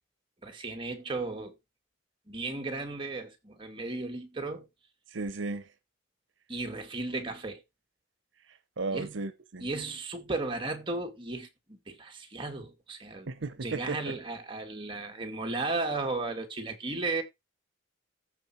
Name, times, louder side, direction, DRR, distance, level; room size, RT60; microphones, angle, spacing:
voice 1, 0.4-1.6 2.3-4.7 6.5-7.6 8.9-9.2 9.6-13.3 13.6-17.2, right 3 dB, 25° right, 2.2 m, -35 dB
voice 2, 5.1-5.7 8.5-9.7 13.3-14.1, right 3 dB, 75° right, 0.8 m, -35 dB
14.5 x 4.9 x 4.4 m
head